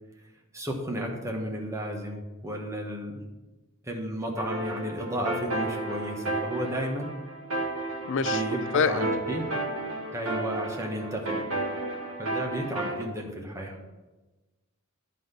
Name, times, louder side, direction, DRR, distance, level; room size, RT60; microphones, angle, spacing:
voice 1, 0.5-3.2 3.8-7.1 8.2-9.4 10.1-11.5 12.2-13.8, equal, 15° right, 0 dB, 1.2 m, -33 dB
sound 1, 4.4-13.0, right 2 dB, 80° right, 1.3 m, -32 dB
voice 2, 8.1-8.4 8.7-9.1, left 6 dB, 60° left, 11 dB, 0.4 m, -25 dB
10.5 x 3.9 x 6.7 m, 1.2 s
head